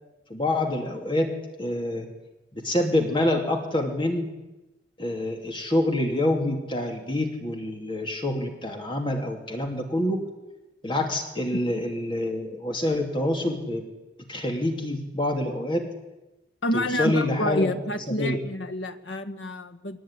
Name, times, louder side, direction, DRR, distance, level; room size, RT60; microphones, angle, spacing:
voice 1, 0.3-1.3 1.6-2.1 2.5-4.3 5.0-10.3 10.8-13.8 14.3-15.9 16.7-17.7 18.2-18.4, left 1 dB, 25° left, 3 dB, 2.7 m, -26 dB
voice 2, 16.6-20.0, left 1 dB, 75° left, 9 dB, 1.6 m, -28 dB
22.5 x 19.0 x 9.9 m, 1.0 s
head